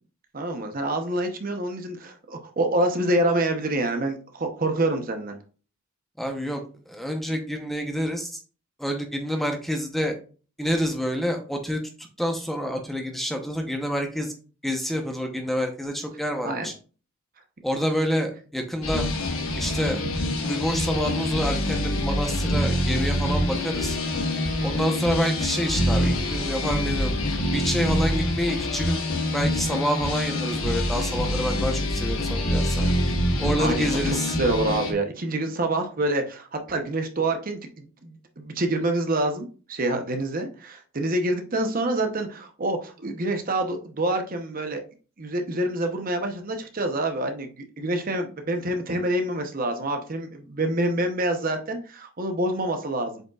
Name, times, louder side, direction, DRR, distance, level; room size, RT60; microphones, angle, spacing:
voice 1, 0.3-5.4 16.4-16.7 33.6-44.8 45.2-53.2, right 1 dB, 40° right, 5 dB, 0.9 m, -27 dB
voice 2, 6.2-8.4 8.8-10.2 10.6-14.3 14.6-16.7 17.6-19.1 19.5-20.0 20.5-24.0 24.6-27.2 27.5-29.0 29.3-32.9 33.4-34.4, equal, ahead, 3 dB, 0.8 m, -28 dB
sound 1, 18.8-34.9, left 1 dB, 75° left, 1.4 m, -25 dB
7.6 x 5.1 x 2.4 m, 0.38 s
head